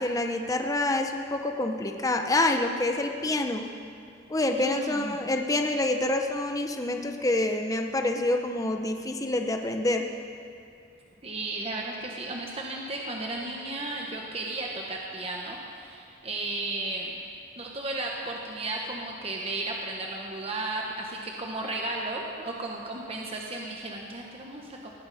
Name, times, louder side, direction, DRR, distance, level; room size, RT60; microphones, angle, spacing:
voice 1, 0.0-3.7 4.3-10.1, left 2 dB, 20° left, 4 dB, 0.8 m, -27 dB
voice 2, 4.5-5.2 11.2-17.1 17.6-24.9, right 2 dB, 30° right, -1 dB, 1.2 m, -34 dB
19.5 x 14.5 x 4.2 m, 2.4 s
head